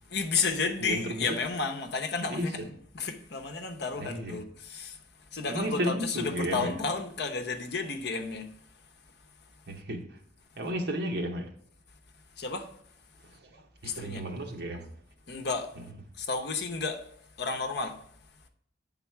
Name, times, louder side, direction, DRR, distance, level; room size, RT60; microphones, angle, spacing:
voice 1, 0.1-8.5 12.4-12.7 13.8-14.2 15.3-15.7 16.2-17.1 17.4-18.0, left 4 dB, 65° left, 0.8 m, -32 dB
voice 2, 0.8-1.4 2.3-2.5 4.0-4.3 5.5-6.7 9.7-10.2 10.6-11.5 13.5-14.9, equal, 65° right, 1.0 m, -33 dB
8.4 x 4.0 x 4.5 m
head